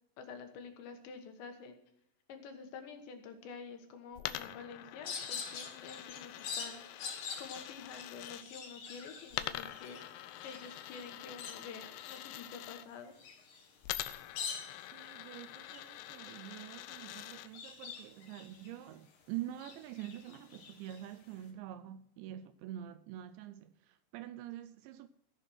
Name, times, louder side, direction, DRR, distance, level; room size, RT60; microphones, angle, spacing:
voice 1, 0.2-1.8 2.3-7.0 7.4-10.0 10.4-13.2, left 5 dB, 70° left, 3.5 m, -48 dB
Coin (dropping), 4.2-8.4 9.3-12.8 13.8-17.5, left 14 dB, 85° left, 2.3 m, -45 dB
sound 1, 5.0-19.2 19.5-21.4, left 6 dB, 55° left, 2.4 m, -46 dB
voice 2, 14.7-25.1, right 12 dB, 80° right, 2.7 m, -46 dB
16.5 x 7.1 x 6.2 m
omnidirectional pair, 5.5 m